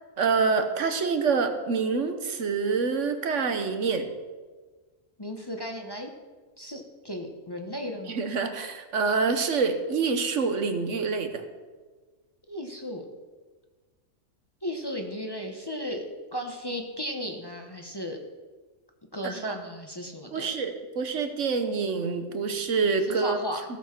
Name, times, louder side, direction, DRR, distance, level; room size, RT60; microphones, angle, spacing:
voice 1, 0.2-4.1 8.1-11.4 19.2-19.6 20.3-23.4, right 5 dB, 70° right, 8 dB, 1.3 m, -26 dB
voice 2, 5.2-6.1 6.6-8.2 12.5-13.1 14.6-18.2 19.1-20.5 23.1-23.6, equal, 20° left, 2 dB, 1.0 m, -35 dB
15.0 x 7.1 x 5.9 m, 1.3 s
omnidirectional pair, 1.3 m